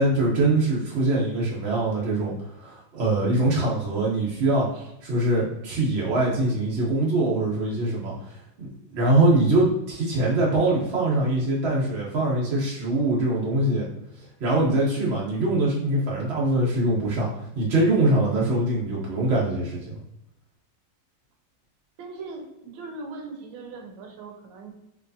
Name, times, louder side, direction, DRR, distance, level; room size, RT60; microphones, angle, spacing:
voice 1, 0.0-2.3 2.6-4.7 5.0-13.8 14.4-17.3 17.5-20.0, right 2 dB, 50° right, -5 dB, 0.8 m, -23 dB
voice 2, 22.0-24.7, right 3 dB, 65° right, 2 dB, 1.5 m, -40 dB
4.6 x 3.2 x 2.7 m, 0.85 s
omnidirectional pair, 2.3 m